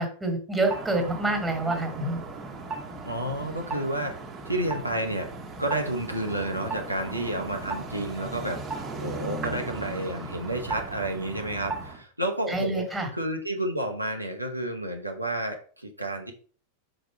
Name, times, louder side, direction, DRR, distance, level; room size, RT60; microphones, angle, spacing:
voice 1, 0.0-2.2 12.5-13.1, right 2 dB, 10° right, 4 dB, 1.9 m, -27 dB
sound 1, 0.6-12.0, right 3 dB, 25° right, 1.3 m, -37 dB
voice 2, 3.0-4.2 4.4-5.3 5.6-12.8 13.1-16.3, right 1 dB, 85° right, 2 dB, 1.0 m, -30 dB
5.0 x 4.3 x 5.1 m, 0.42 s
figure-of-eight pair, 90°, 0 cm